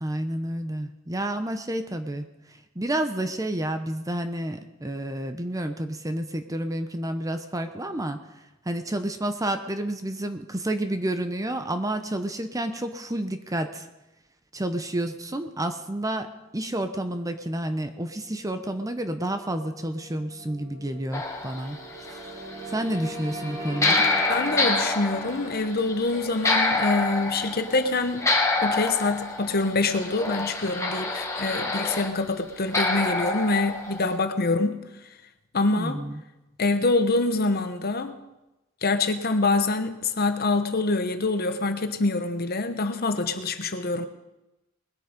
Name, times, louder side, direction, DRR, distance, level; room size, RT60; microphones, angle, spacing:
voice 1, 0.0-2.3 2.8-8.2 8.7-13.9 14.5-16.3 16.5-21.8 22.7-24.0 35.7-36.2, right 1 dB, 15° right, 8 dB, 0.8 m, -30 dB
sound 1, 18.2-30.6, right 1 dB, 50° right, 4.0 m, -41 dB
sound 2, 21.1-23.1 23.4-32.2 32.7-34.1, left 3 dB, 15° left, 1.6 m, -27 dB
voice 2, 24.3-28.2 28.6-34.8 35.5-36.0 36.6-38.2 38.8-44.1, left 3 dB, 50° left, 9 dB, 1.1 m, -25 dB
20.5 x 8.4 x 5.3 m, 0.97 s
head